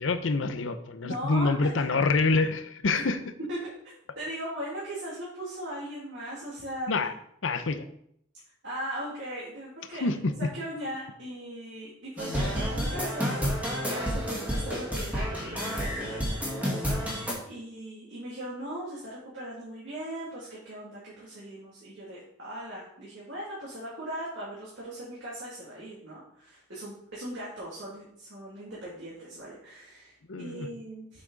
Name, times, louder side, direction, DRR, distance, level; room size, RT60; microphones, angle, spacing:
voice 1, 0.0-3.2 6.9-7.1 7.4-7.8 9.9-10.5 30.3-30.7, left 3 dB, 80° left, 10 dB, 0.7 m, -26 dB
voice 2, 1.0-2.0 2.9-3.1 3.5-3.7 4.1-6.9 8.6-10.2 10.5-13.3 13.9-16.7 16.9-31.2, right 1 dB, 70° right, -8 dB, 2.5 m, -39 dB
sound 1, 12.2-17.3, equal, 10° right, 1.8 m, -30 dB
7.4 x 6.0 x 4.0 m, 0.71 s
head